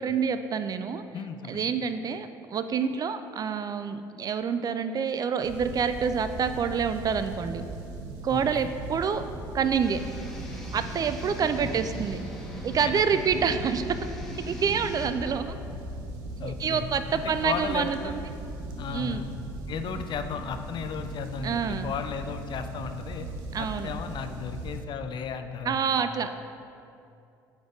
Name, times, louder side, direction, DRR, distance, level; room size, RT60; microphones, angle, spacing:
voice 1, 0.0-1.0 1.5-7.6 8.2-9.2 9.5-10.0 10.7-12.2 12.6-13.8 14.5-15.5 16.4-18.2 18.9-19.2 21.4-21.9 23.5-23.9 25.7-26.4, right 6 dB, 35° right, 10 dB, 0.3 m, -27 dB
voice 2, 1.1-1.7 8.3-8.7 12.8-12.9 16.4-16.9 17.1-18.2 18.8-19.2 19.7-23.3 23.6-26.1, left 6 dB, 45° left, 8 dB, 0.5 m, -35 dB
sound 1, 5.4-24.8, right 2 dB, 70° right, 0.7 m, -38 dB
sound 2, 9.8-15.1, equal, 5° left, 1.3 m, -41 dB
8.3 x 4.0 x 3.7 m, 2.6 s
hypercardioid pair, 55°, 11 cm